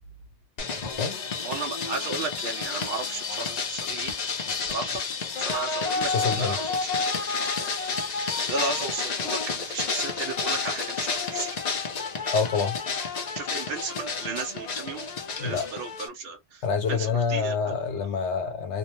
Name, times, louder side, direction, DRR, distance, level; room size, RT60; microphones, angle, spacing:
sound 1, 0.6-16.1, left 4 dB, 45° left, 0.6 m, -30 dB
voice 1, 1.4-4.1 4.7-4.9 5.4-6.9 7.4-8.0 8.3-11.6 13.3-15.1 15.4-17.8, right 4 dB, 65° right, 0.8 m, -34 dB
voice 2, 6.1-6.6 12.3-12.8 15.4-15.7 16.6-18.8, left 5 dB, 85° left, 0.9 m, -27 dB
2.6 x 2.1 x 2.8 m
omnidirectional pair, 1.1 m